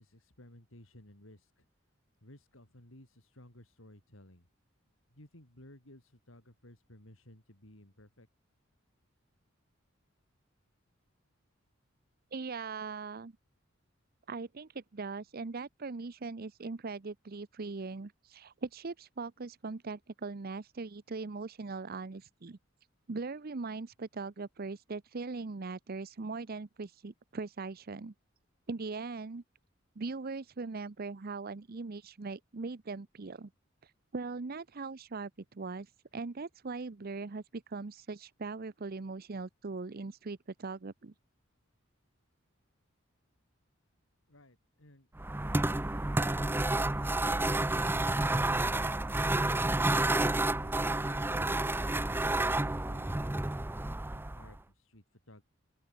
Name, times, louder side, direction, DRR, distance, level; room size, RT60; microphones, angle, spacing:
voice 1, 0.0-1.7 2.2-4.5 5.1-8.3 44.3-45.1 54.1-55.4, left 1 dB, 80° left, 6.0 m, -57 dB
voice 2, 12.3-13.3 14.3-22.6 23.1-28.1 28.7-29.4 30.0-33.5 33.8-41.1, right 4 dB, 50° right, 0.7 m, -40 dB
sound 1, 45.2-54.6, right 2 dB, 10° right, 0.6 m, -30 dB
open air
head